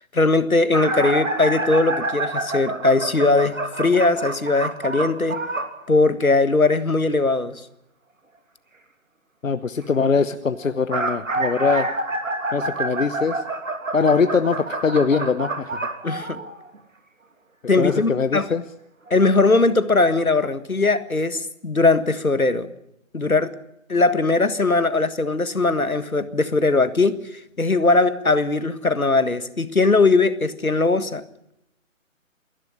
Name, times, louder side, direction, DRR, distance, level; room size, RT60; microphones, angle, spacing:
voice 1, 0.1-5.4 5.9-7.6 16.0-16.4 17.7-18.5 19.1-22.7 23.1-23.5 23.9-31.2, left 3 dB, 85° left, 13 dB, 1.7 m, -20 dB
sound 1, 0.7-5.8 10.6-16.8 17.9-18.0 19.1-19.2 19.5-19.6, right 2 dB, 65° right, 3.2 m, -27 dB
voice 2, 9.4-11.9 12.5-13.4 13.9-15.9 17.8-18.6, left 5 dB, 70° left, 12 dB, 1.1 m, -22 dB
28.0 x 11.5 x 9.8 m, 0.82 s
figure-of-eight pair, 145°, 41 cm